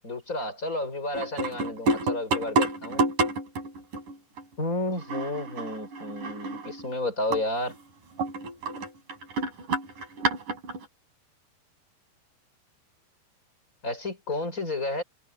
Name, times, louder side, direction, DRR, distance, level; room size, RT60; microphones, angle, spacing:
voice 1, 0.0-3.0 4.6-7.7 13.8-15.0, left 2 dB, 15° left, 6.8 m, -31 dB
sound 1, 1.1-4.4 5.0-6.9 7.3-7.4 7.7-7.8 8.2-10.9, right 3 dB, 45° right, 6.7 m, -29 dB
omnidirectional pair, 5.1 m